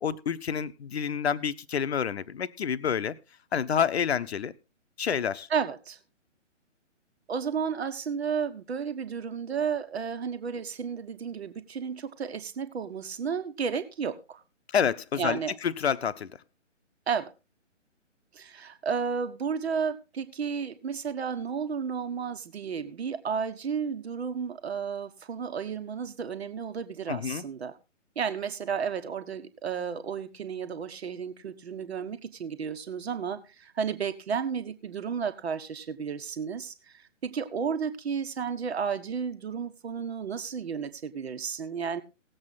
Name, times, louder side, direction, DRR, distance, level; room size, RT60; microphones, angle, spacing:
voice 1, 0.0-3.2 3.5-4.5 5.0-5.5 14.7-16.3 27.1-27.4, left 7 dB, 55° left, 13 dB, 0.9 m, -28 dB
voice 2, 5.5-6.0 7.3-14.4 15.2-15.5 17.1-17.3 18.3-27.7 28.1-42.0, right 6 dB, 55° right, 9 dB, 1.6 m, -32 dB
18.0 x 7.8 x 4.0 m, 0.29 s
figure-of-eight pair, 140°, 37 cm